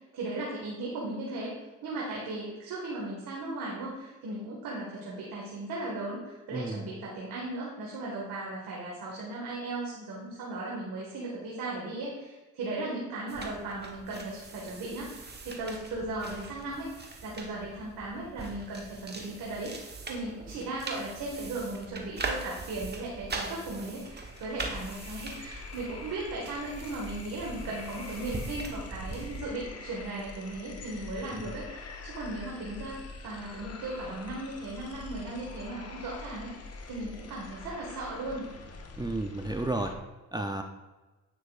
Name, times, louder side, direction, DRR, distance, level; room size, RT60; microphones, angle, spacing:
voice 1, 0.1-1.5 1.8-15.1 15.4-19.8 20.1-38.4, right 2 dB, 70° right, -4 dB, 1.9 m, -37 dB
voice 2, 6.5-6.9 39.0-40.0 40.3-40.6, right 2 dB, 10° right, 5 dB, 0.6 m, -32 dB
sound 1, 13.3-29.4, right 3 dB, 30° right, 1.2 m, -41 dB
sound 2, 23.3-40.0, left 3 dB, 45° left, 1.2 m, -45 dB
9.3 x 6.1 x 2.5 m, 1.2 s
supercardioid pair, 60°, 35 cm